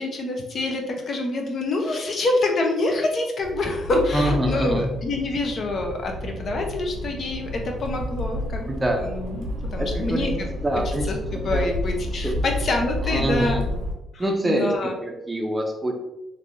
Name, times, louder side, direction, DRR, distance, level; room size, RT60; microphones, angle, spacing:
voice 1, 0.0-8.7 9.0-10.5 11.1-13.6 14.1-15.0, left 2 dB, 50° left, 2 dB, 0.6 m, -26 dB
Accelerating revving vroom, 3.4-13.9, left 1 dB, 85° right, 0.5 m, -30 dB
voice 2, 4.1-4.9 8.7-9.0 9.8-10.3 10.6-11.7 12.2-12.4 13.0-13.6 14.2-15.9, right 1 dB, 15° right, 1 dB, 0.5 m, -25 dB
3.3 x 2.6 x 2.5 m, 0.93 s
cardioid pair, 90°, 0 cm